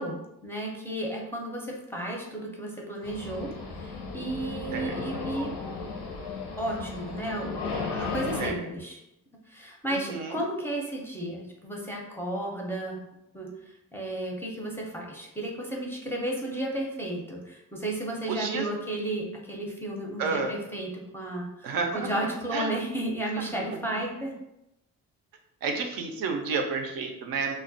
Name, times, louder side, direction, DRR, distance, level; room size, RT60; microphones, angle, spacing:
voice 1, 0.0-5.5 6.6-7.6 7.9-9.0 9.5-13.0 13.3-13.5 13.9-24.3, right 1 dB, 5° left, -2 dB, 0.5 m, -33 dB
sound 1, 3.0-8.5, left 4 dB, 85° left, 0.6 m, -35 dB
voice 2, 9.9-10.4 18.3-18.7 20.2-20.6 21.6-22.9 23.5-24.0 25.6-27.6, right 4 dB, 70° right, 4 dB, 0.5 m, -31 dB
2.3 x 2.1 x 2.6 m, 0.88 s
cardioid pair, 75°, 36 cm